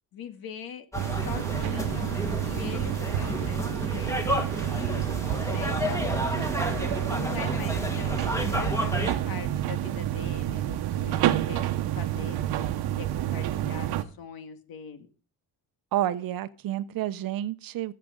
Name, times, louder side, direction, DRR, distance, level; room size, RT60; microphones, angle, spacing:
voice 1, 0.1-0.9 1.1-6.5 7.1-11.6 12.0-15.1, left 7 dB, 65° left, 1.9 m, -42 dB
sound 1, 0.9-9.2, left 1 dB, 10° left, 1.6 m, -31 dB
sound 2, 0.9-14.0, right 12 dB, 80° right, 1.2 m, -29 dB
voice 2, 15.9-17.9, right 12 dB, 60° right, 0.9 m, -29 dB
22.0 x 7.8 x 3.9 m
cardioid pair, 145°, 38 cm